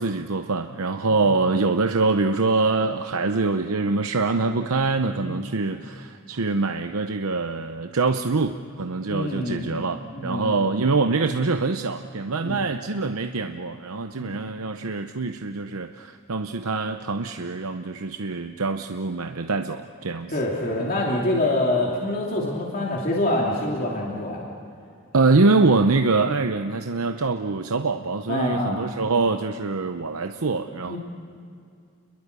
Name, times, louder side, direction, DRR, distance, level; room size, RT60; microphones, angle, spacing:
voice 1, 0.0-20.3 25.1-31.0, right 3 dB, 80° right, 7 dB, 0.8 m, -24 dB
voice 2, 1.1-1.4 5.2-5.5 9.1-9.8 10.1-10.6 12.4-12.6 14.2-14.4 20.3-24.4 28.3-28.8 30.9-31.0, left 1 dB, 40° left, -3 dB, 2.9 m, -26 dB
30.0 x 22.0 x 6.8 m, 2.4 s
head